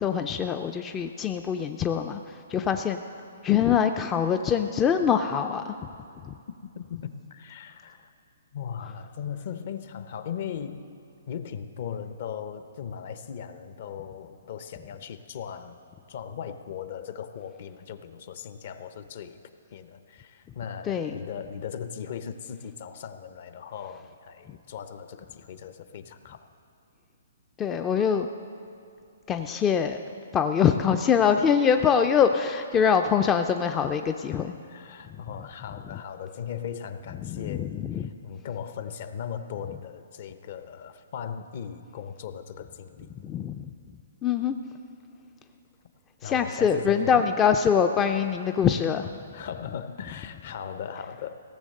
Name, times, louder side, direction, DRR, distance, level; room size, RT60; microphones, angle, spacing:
voice 1, 0.0-3.0 3.4-5.8 6.2-6.3 20.8-21.2 27.6-28.3 29.3-30.0 30.3-34.5 35.9-36.0 37.2-38.1 43.2-43.7 44.2-44.6 46.2-49.1, left 7 dB, 15° left, 7 dB, 0.3 m, -24 dB
voice 2, 6.6-8.1 8.5-10.9 11.3-15.8 16.1-19.4 19.7-26.5 32.8-33.0 34.7-43.1 46.2-47.2 49.3-51.3, left 8 dB, 50° left, 10 dB, 0.7 m, -38 dB
16.5 x 7.1 x 6.5 m, 2.5 s
hypercardioid pair, 155°, 0 cm